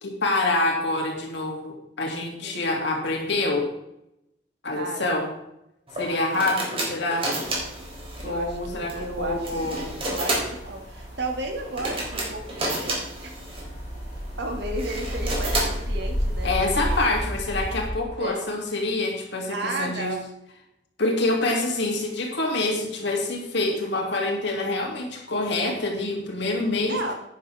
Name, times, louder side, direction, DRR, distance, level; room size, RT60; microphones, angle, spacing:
voice 1, 0.0-3.7 4.6-5.3 6.0-7.3 8.2-9.9 16.4-20.1 21.0-27.0, left 2 dB, 65° left, 0 dB, 3.0 m, -26 dB
voice 2, 4.7-5.3 6.0-6.4 8.2-13.4 14.4-17.1 18.2-18.4 19.5-20.2 26.8-27.1, right 2 dB, 65° right, 2 dB, 2.4 m, -34 dB
sound 1, 5.9-17.1, right 1 dB, 30° right, 3.9 m, -32 dB
sound 2, 7.4-17.9, equal, 40° left, 1.9 m, -33 dB
11.5 x 10.5 x 3.7 m, 0.83 s
head